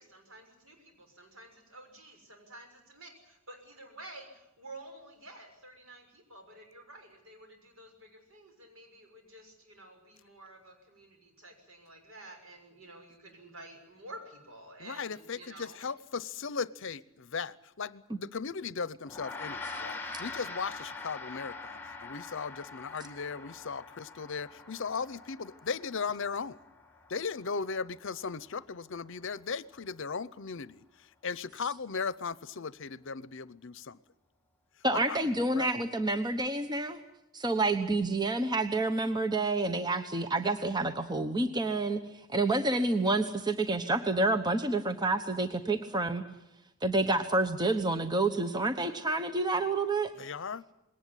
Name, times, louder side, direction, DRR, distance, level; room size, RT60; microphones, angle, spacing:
voice 1, 0.0-15.9, right 2 dB, 70° right, 4 dB, 6.5 m, -51 dB
voice 2, 14.8-26.6 27.1-34.0 34.9-35.2 35.5-35.7 50.2-50.7, left 5 dB, 65° left, 18 dB, 0.7 m, -37 dB
Gong, 19.1-28.7, left 3 dB, 10° left, 2.1 m, -44 dB
voice 3, 34.8-37.0 37.3-42.0 42.3-46.2 46.8-50.1, right 2 dB, 20° right, 8 dB, 1.1 m, -28 dB
21.0 x 18.0 x 10.0 m, 0.91 s
head